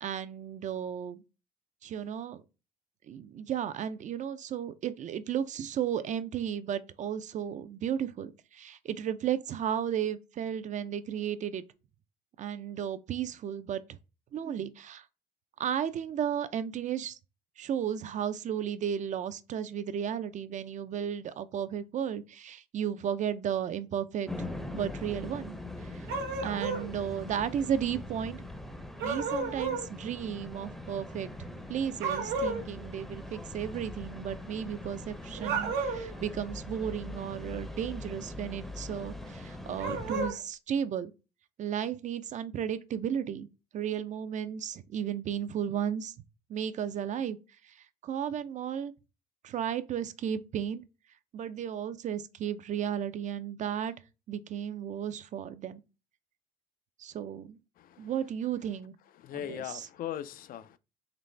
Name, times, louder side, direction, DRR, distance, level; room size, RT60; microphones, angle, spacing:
voice 1, 0.0-1.2 1.8-2.4 3.1-11.6 12.4-13.8 14.3-15.0 15.6-17.2 17.6-25.6 25.8-28.4 29.0-41.1 41.6-43.5 43.7-46.2 46.5-47.4 47.6-48.9 49.4-50.8 51.3-53.9 54.3-55.8 57.0-57.6 58.0-59.0 59.3-59.9, right 9 dB, 45° right, 0.4 m, -34 dB
sound 1, 24.3-40.3, left 2 dB, ahead, 0.6 m, -42 dB
sound 2, 26.1-26.9 29.0-29.9 32.0-32.6 35.4-36.1 39.8-40.4, right 4 dB, 85° right, 0.9 m, -32 dB
voice 2, 59.2-60.8, left 11 dB, 60° left, 0.4 m, -38 dB
4.0 x 3.1 x 3.3 m
cardioid pair, 110°, 17 cm